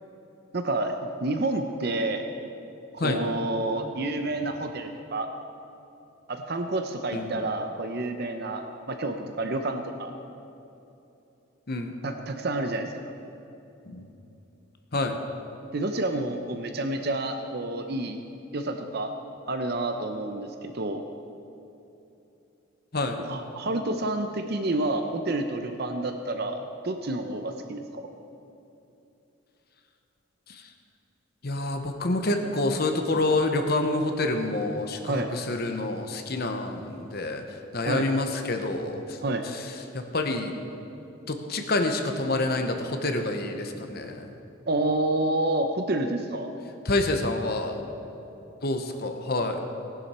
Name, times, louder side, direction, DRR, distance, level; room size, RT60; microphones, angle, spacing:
voice 1, 0.5-2.2 2.9-5.3 6.3-10.1 12.0-13.1 15.7-18.2 18.5-19.1 19.5-21.0 23.3-28.1 35.1-35.3 37.8-38.1 39.2-39.5 44.7-46.5, right 2 dB, 50° right, 6 dB, 0.7 m, -29 dB
voice 2, 14.9-15.2 22.9-23.2 30.5-30.7 31.4-37.4 37.7-39.2 39.5-40.5 41.3-44.3 46.8-47.8 48.6-49.6, left 2 dB, 50° left, 5 dB, 0.9 m, -28 dB
19.0 x 11.0 x 4.3 m, 2.9 s
head